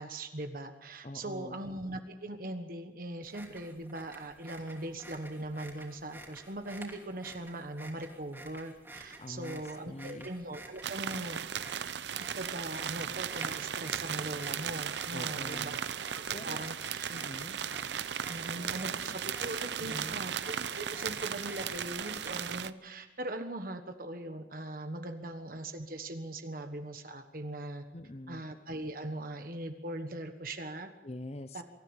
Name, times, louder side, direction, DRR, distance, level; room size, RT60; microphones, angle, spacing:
voice 1, 0.0-11.5 12.2-15.8 16.1-17.1 18.3-27.8 28.3-30.9 31.5-31.6, right 1 dB, 55° right, 7 dB, 1.4 m, -40 dB
voice 2, 1.0-1.6 9.2-10.3 15.1-15.8 16.1-16.6 17.1-17.6 18.1-19.2 19.8-20.2 27.9-28.4 31.0-31.6, left 1 dB, 35° left, 12 dB, 0.8 m, -45 dB
sound 1, 3.2-22.7, right 2 dB, 15° right, 3.0 m, -50 dB
sound 2, 10.8-22.7, right 8 dB, 85° right, 0.7 m, -36 dB
23.5 x 14.0 x 9.0 m, 1.1 s
head